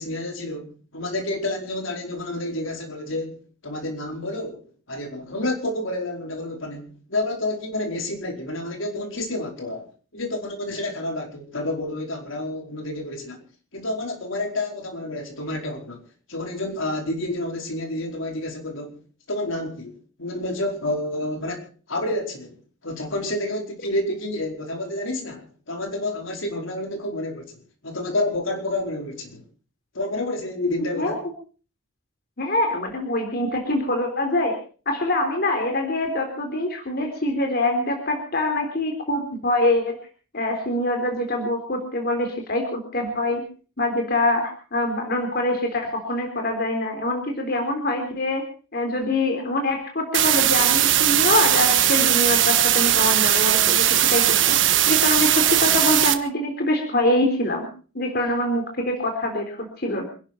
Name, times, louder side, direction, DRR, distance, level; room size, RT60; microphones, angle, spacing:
voice 1, 0.0-4.6 4.9-13.4 13.7-16.0 16.3-19.0 19.3-22.6 22.8-29.4 29.9-31.2, left 1 dB, 75° left, 4.7 m, -29 dB
voice 2, 32.4-34.6 34.9-40.0 40.3-43.4 43.8-48.5 48.7-57.7 57.9-60.0, left 1 dB, 50° left, 3.7 m, -24 dB
sound 1, 50.1-56.1, right 12 dB, 65° right, 1.4 m, -19 dB
27.5 x 11.5 x 4.5 m
head